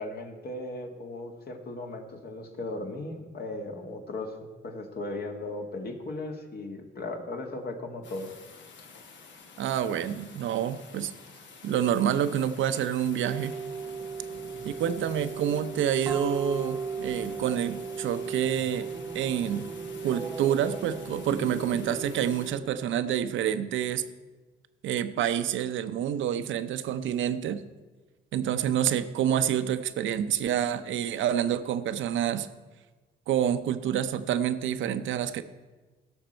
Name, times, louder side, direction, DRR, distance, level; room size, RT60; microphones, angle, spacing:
voice 1, 0.0-4.4 4.6-8.3 14.3-14.8 15.0-15.1, left 2 dB, 50° left, 3 dB, 1.8 m, -37 dB
sound 1, 8.0-22.5, left 4 dB, 65° left, 1.4 m, -47 dB
voice 2, 9.6-11.1 11.6-13.6 14.6-18.9 19.1-19.7 20.0-24.0 24.8-27.6 28.3-32.5 33.3-35.4, right 9 dB, 75° right, 11 dB, 0.7 m, -28 dB
sound 2, 13.2-22.9, right 5 dB, 20° right, 0.4 m, -37 dB
17.0 x 6.7 x 4.5 m, 1.3 s
cardioid pair, 90°, 20 cm